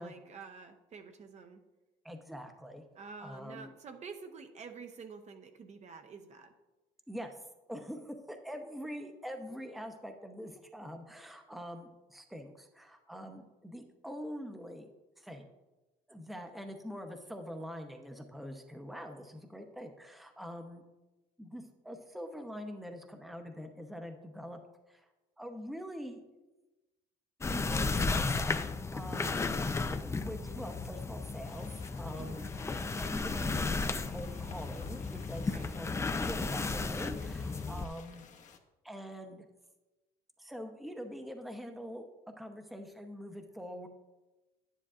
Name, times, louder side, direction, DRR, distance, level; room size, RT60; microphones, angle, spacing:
voice 1, 0.0-1.6 2.9-6.5 29.1-29.4 32.2-32.4 35.5-35.7, right 5 dB, 40° right, 6 dB, 0.8 m, -49 dB
voice 2, 2.0-3.8 7.1-7.3 7.7-14.9 15.2-15.5 16.1-20.8 21.4-24.6 24.9-25.0 25.4-26.2 27.5-28.5 28.9-29.4 29.7-31.7 32.0-38.3 38.8-39.4 40.4-42.1 42.4-43.9, equal, ahead, 5 dB, 0.8 m, -44 dB
sound 1, 27.4-37.9, left 3 dB, 15° left, 0.4 m, -34 dB
sound 2, 31.4-38.6, left 5 dB, 45° left, 1.0 m, -55 dB
10.5 x 10.0 x 2.5 m, 1.1 s
cardioid pair, 110°, 17 cm